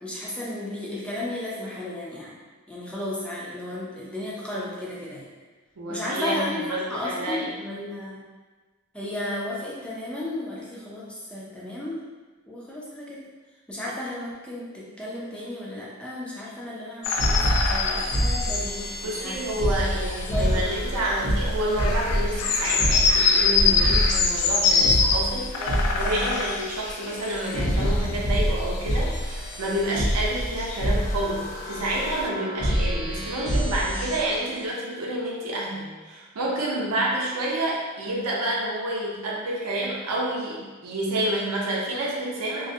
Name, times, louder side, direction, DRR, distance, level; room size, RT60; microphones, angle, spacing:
voice 1, 0.0-2.4 2.7-5.3 5.9-6.6 6.9-8.2 8.9-12.1 12.5-13.2 13.7-19.4 20.3-20.6 25.6-26.4, left 1 dB, 5° left, -6 dB, 0.3 m, -34 dB
voice 2, 5.8-7.5 19.0-42.7, right 1 dB, 80° right, -4 dB, 0.6 m, -29 dB
sound 1, 17.0-32.3, left 4 dB, 90° left, 0.3 m, -26 dB
sound 2, 17.2-23.3 23.6-26.5 27.1-34.6, equal, 60° left, 0.8 m, -27 dB
2.3 x 2.0 x 2.6 m, 1.3 s
head